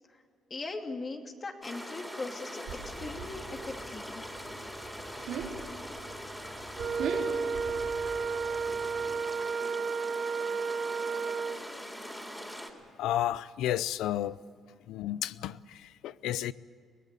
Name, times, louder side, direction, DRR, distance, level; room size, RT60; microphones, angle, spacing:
voice 1, 0.5-4.3, left 3 dB, 35° left, 2.6 m, -40 dB
sound 1, 1.6-12.7, equal, 5° left, 3.7 m, -42 dB
sound 2, 2.7-9.2, right 5 dB, 85° right, 4.0 m, -42 dB
Wind instrument woodwind instrument, 6.8-11.7, right 5 dB, 50° right, 0.6 m, -32 dB
voice 2, 13.0-14.4 14.8-16.5, left 12 dB, 90° left, 0.5 m, -32 dB
23.5 x 17.0 x 8.4 m
cardioid pair, 90°, 0 cm